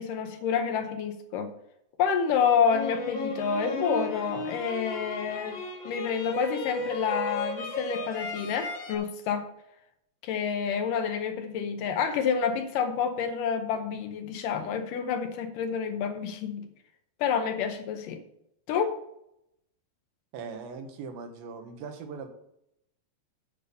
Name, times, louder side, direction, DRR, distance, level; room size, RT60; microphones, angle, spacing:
voice 1, 0.0-1.5 2.0-5.6 5.9-9.5 10.2-16.6 17.2-18.2 18.7-19.0, left 7 dB, 75° left, 6 dB, 2.2 m, -28 dB
sound 1, 2.6-8.9, left 1 dB, 45° left, 1.7 m, -35 dB
voice 2, 20.3-22.3, right 5 dB, 80° right, 6 dB, 2.9 m, -40 dB
8.6 x 7.0 x 5.4 m, 0.79 s
omnidirectional pair, 4.2 m